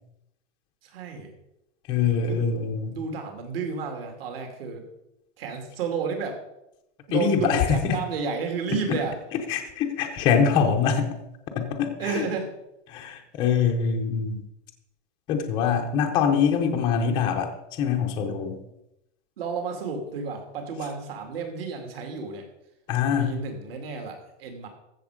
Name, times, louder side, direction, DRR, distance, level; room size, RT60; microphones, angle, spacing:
voice 1, 0.8-1.3 2.2-2.4 2.9-4.8 5.4-6.4 7.1-9.2 12.0-12.5 19.4-22.5 23.1-24.7, right 5 dB, 50° right, 4 dB, 2.8 m, -31 dB
voice 2, 1.9-3.0 7.1-8.0 9.5-11.2 11.5-12.2 12.9-14.4 15.3-17.5 17.8-18.6 22.9-23.3, left 7 dB, 15° left, 2 dB, 0.6 m, -24 dB
14.5 x 7.0 x 5.0 m, 0.85 s
supercardioid pair, 175°, 36 cm